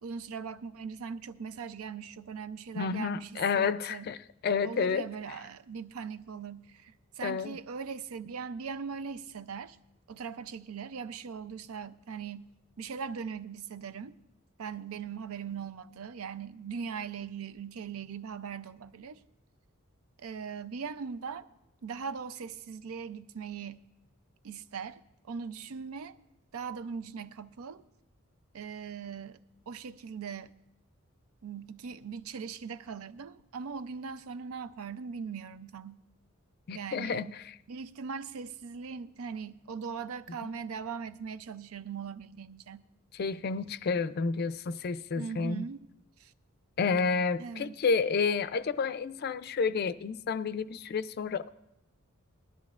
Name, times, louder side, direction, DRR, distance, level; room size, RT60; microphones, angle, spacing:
voice 1, 0.0-4.1 4.6-9.8 10.1-12.5 12.8-14.2 14.6-19.2 20.2-21.5 21.8-23.9 24.4-25.0 25.3-26.2 26.5-27.8 28.5-29.4 29.7-30.5 31.4-36.0 36.7-37.4 37.7-42.8 45.2-45.9 46.2-46.3 47.4-47.7, right 6 dB, 90° right, 0.5 m, -40 dB
voice 2, 2.7-4.2 4.4-5.1 7.2-7.6 36.7-37.3 40.4-40.5 43.1-45.6 46.8-51.5, left 5 dB, 45° left, 0.4 m, -30 dB
19.0 x 12.5 x 2.4 m
head